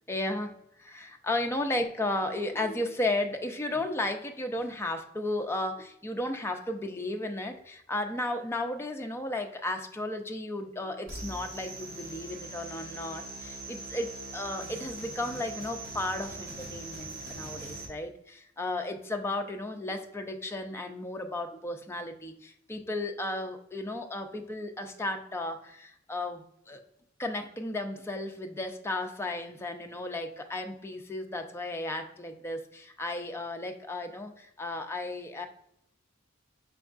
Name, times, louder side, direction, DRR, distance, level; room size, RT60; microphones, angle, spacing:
voice 1, 0.1-0.5 0.8-26.8 27.2-35.5, left 2 dB, 10° left, 4 dB, 0.4 m, -34 dB
sound 1, 11.1-17.9, right 2 dB, 50° right, 1.3 m, -41 dB
5.3 x 3.5 x 2.4 m, 0.75 s
head